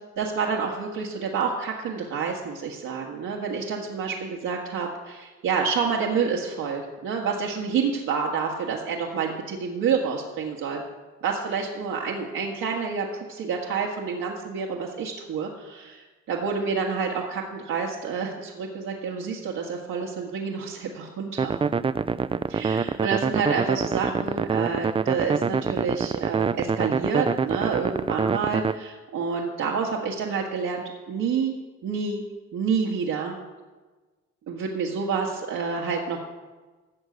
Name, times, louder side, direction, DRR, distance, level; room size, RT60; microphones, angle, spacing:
voice 1, 0.2-10.8 11.2-21.5 22.5-31.6 31.8-32.3 32.5-33.4 34.5-36.2, right 5 dB, 80° right, -2 dB, 1.8 m, -28 dB
sound 1, 21.4-28.7, right 5 dB, 20° right, 0.3 m, -25 dB
14.0 x 6.5 x 8.1 m, 1.3 s
cardioid pair, 90°, 30 cm